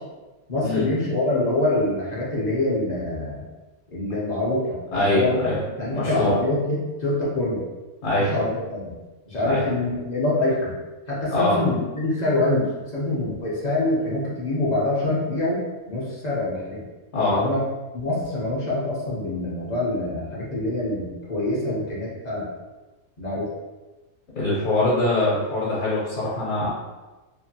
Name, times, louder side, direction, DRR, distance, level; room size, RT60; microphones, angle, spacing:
voice 1, 0.5-3.4 3.9-5.4 5.8-7.6 8.2-8.9 9.3-10.7 11.1-15.6 15.9-16.8 17.3-17.6 17.9-22.5 23.2-23.5, left 2 dB, 45° left, -6 dB, 0.5 m, -25 dB
voice 2, 4.9-5.6 5.9-6.4 8.0-8.3 9.4-9.6 11.3-11.6 17.1-17.4 24.3-26.7, left 2 dB, 65° left, -8 dB, 1.2 m, -23 dB
2.7 x 2.5 x 2.6 m, 1.2 s
omnidirectional pair, 1.5 m